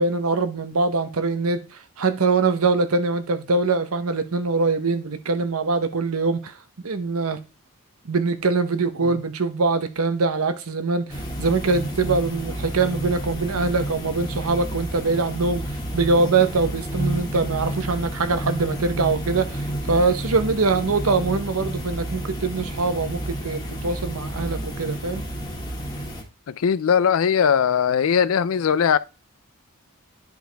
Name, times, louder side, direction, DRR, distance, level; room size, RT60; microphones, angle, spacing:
voice 1, 0.0-1.6 2.0-6.5 6.8-7.4 8.0-15.6 15.9-25.2, right 3 dB, 80° right, 0.9 m, -23 dB
sound 1, 11.1-26.2, right 1 dB, 20° left, 1.6 m, -30 dB
voice 2, 26.5-29.0, left 7 dB, 70° left, 0.4 m, -20 dB
10.5 x 4.7 x 3.4 m
head